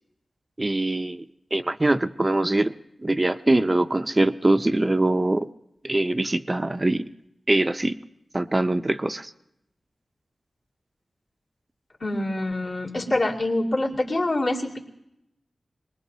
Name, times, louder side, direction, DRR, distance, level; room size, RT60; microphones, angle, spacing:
voice 1, 0.6-1.2 1.5-2.7 3.0-5.5 5.8-7.0 7.5-8.0 8.3-9.3, right 2 dB, 25° right, 9 dB, 0.5 m, -23 dB
voice 2, 12.0-14.8, left 1 dB, 65° left, -4 dB, 2.4 m, -25 dB
23.0 x 20.0 x 2.8 m, 0.85 s
wide cardioid pair, 70°, 0 cm